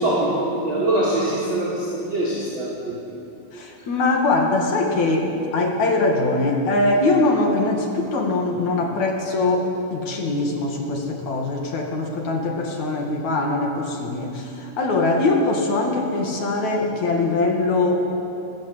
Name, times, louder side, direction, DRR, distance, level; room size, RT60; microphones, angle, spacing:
voice 1, 0.0-3.2, right 1 dB, 30° right, -5 dB, 3.5 m, -23 dB
voice 2, 3.5-18.1, left 2 dB, 45° left, 1 dB, 2.7 m, -22 dB
27.5 x 15.5 x 8.0 m, 2.8 s
omnidirectional pair, 5.8 m